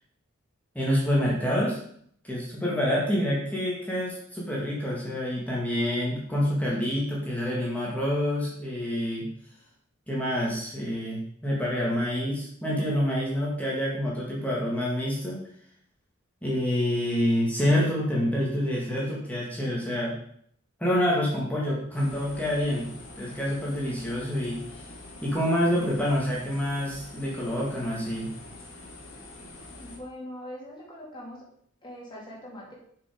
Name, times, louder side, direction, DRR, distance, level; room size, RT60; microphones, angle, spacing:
voice 1, 0.8-1.8 2.3-9.3 10.1-15.4 16.4-20.1 20.8-24.6 25.2-28.3, equal, 10° left, -5 dB, 1.9 m, -27 dB
sound 1, 21.9-30.0, left 2 dB, 75° left, 1.9 m, -45 dB
voice 2, 29.8-31.4 31.8-32.7, left 1 dB, 25° left, -5 dB, 2.4 m, -42 dB
7.1 x 5.3 x 5.1 m, 0.65 s
head